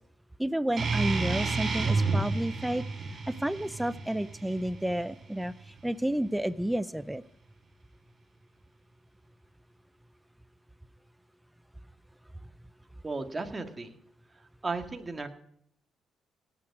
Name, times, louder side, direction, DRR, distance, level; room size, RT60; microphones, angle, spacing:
voice 1, 0.4-2.8 3.3-7.2, right 1 dB, 5° right, 16 dB, 0.5 m, -31 dB
sound 1, 0.8-5.8, right 4 dB, 45° right, 5.7 m, -31 dB
voice 2, 13.0-13.9 14.6-15.3, right 3 dB, 25° right, 5 dB, 1.9 m, -34 dB
18.0 x 8.6 x 4.8 m, 0.71 s
cardioid pair, 90°, 0 cm